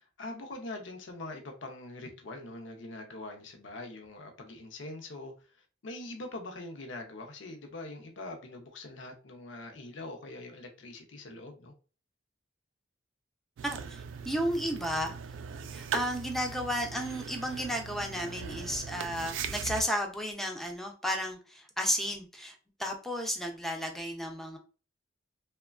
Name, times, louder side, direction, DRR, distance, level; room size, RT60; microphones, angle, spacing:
voice 1, 0.0-5.6 5.8-11.7, left 2 dB, 75° left, 4 dB, 0.6 m, -43 dB
voice 2, 13.6-15.1 15.7-24.6, equal, ahead, 2 dB, 0.4 m, -33 dB
sound 1, 13.6-19.8, right 6 dB, 80° right, 0.3 m, -40 dB
3.0 x 2.2 x 2.3 m, 0.36 s
head